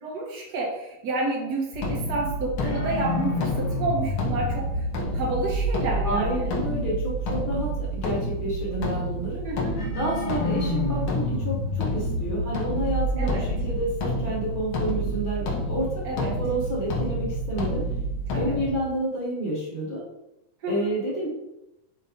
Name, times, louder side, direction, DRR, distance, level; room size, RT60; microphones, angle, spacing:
voice 1, 0.0-4.9 5.1-6.5 9.4-9.8 13.2-13.5 16.0-16.3 18.3-18.6 20.6-20.9, right 2 dB, 70° right, -3 dB, 0.9 m, -30 dB
sound 1, 1.7-18.7, equal, 65° left, 1.3 m, -28 dB
voice 2, 6.0-9.4 9.9-17.8 18.4-20.1 20.6-21.3, right 1 dB, 30° right, -7 dB, 0.8 m, -30 dB
5.4 x 3.5 x 5.1 m, 0.88 s
omnidirectional pair, 3.4 m